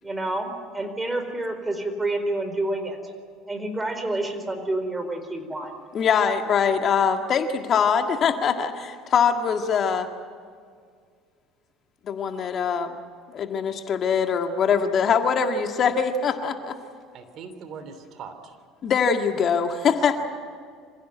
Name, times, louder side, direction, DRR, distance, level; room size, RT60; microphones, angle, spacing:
voice 1, 0.0-3.0 3.5-5.7, right 2 dB, 15° right, 8 dB, 4.4 m, -28 dB
voice 2, 5.9-10.1 12.0-12.9 13.3-16.8 18.8-20.2, left 6 dB, 45° left, 6 dB, 1.8 m, -23 dB
voice 3, 17.1-18.6, right 5 dB, 55° right, 9 dB, 3.1 m, -40 dB
26.0 x 16.0 x 9.4 m, 2.1 s
hypercardioid pair, 75°, 0 cm